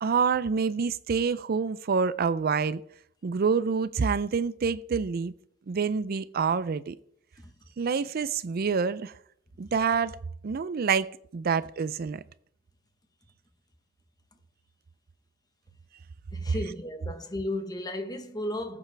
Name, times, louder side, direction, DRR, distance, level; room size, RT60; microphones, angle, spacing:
voice 1, 0.0-2.8 3.2-5.3 5.7-7.0 7.8-9.1 9.6-10.2 10.4-12.2, right 5 dB, 50° right, 0.4 m, -27 dB
voice 2, 16.3-18.8, left 1 dB, 20° left, 1.0 m, -34 dB
19.0 x 8.1 x 3.4 m
head